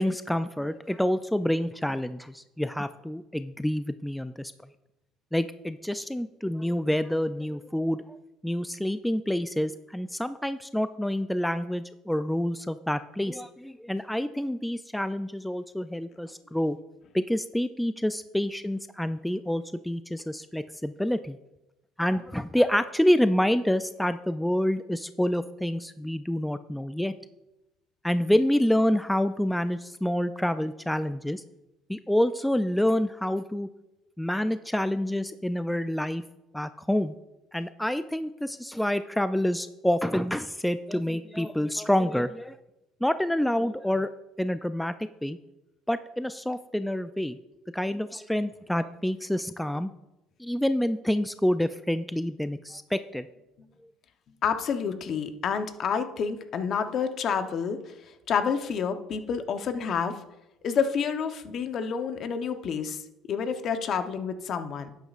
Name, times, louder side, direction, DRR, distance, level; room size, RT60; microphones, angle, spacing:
voice 1, 0.0-4.5 5.3-8.2 8.4-16.8 17.1-21.4 22.0-27.1 28.0-31.4 31.9-33.7 34.2-36.2 36.5-37.1 37.5-42.6 43.0-44.1 44.4-45.4 45.9-47.4 47.7-49.9 50.4-53.3, left 1 dB, 5° left, 11 dB, 0.3 m, -27 dB
voice 2, 54.4-60.2 60.6-63.0 63.3-64.9, left 6 dB, 50° left, 9 dB, 0.8 m, -29 dB
11.5 x 9.2 x 2.5 m, 0.95 s
supercardioid pair, 100°, 0 cm